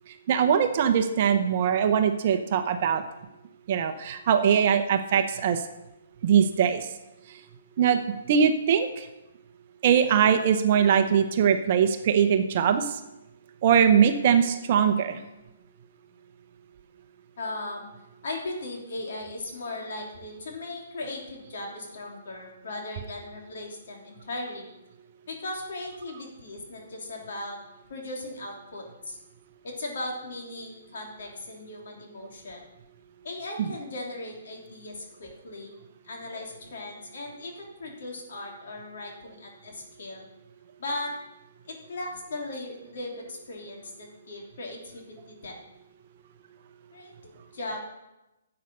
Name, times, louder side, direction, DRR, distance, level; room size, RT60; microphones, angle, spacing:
voice 1, 0.1-3.0 3.7-5.7 6.2-6.9 7.3-7.4 7.8-8.0 8.3-9.1 9.8-13.0 13.6-15.2 33.6-33.7, right 8 dB, 40° right, 7 dB, 0.8 m, -22 dB
voice 2, 17.4-17.9 18.2-24.7 25.3-27.6 27.9-29.2 29.6-32.6 33.2-35.7 36.0-40.3 40.8-41.1 41.6-45.6 46.9-47.8, left 2 dB, 65° left, 0 dB, 3.2 m, -38 dB
11.0 x 7.9 x 5.4 m, 0.97 s
hypercardioid pair, 165°, 0 cm